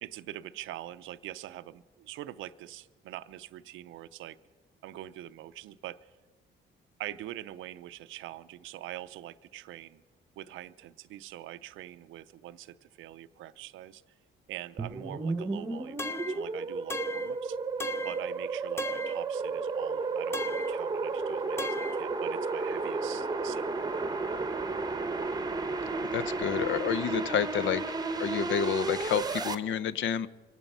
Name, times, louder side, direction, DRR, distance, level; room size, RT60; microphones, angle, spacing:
voice 1, 0.0-4.4 4.8-6.0 7.0-10.0 10.4-14.0 14.5-17.6 18.0-23.7, right 14 dB, 85° right, 14 dB, 0.5 m, -44 dB
sound 1, 14.8-29.6, right 4 dB, 20° right, 0.8 m, -33 dB
sound 2, 16.0-16.4 16.9-17.3 17.8-18.2 18.8-19.2 20.3-20.8 21.6-22.0, left 2 dB, 10° left, 0.5 m, -37 dB
voice 2, 26.0-27.8 28.2-30.3, left 8 dB, 75° left, 16 dB, 0.6 m, -29 dB
25.0 x 9.1 x 5.5 m, 1.3 s
cardioid pair, 90°, 20 cm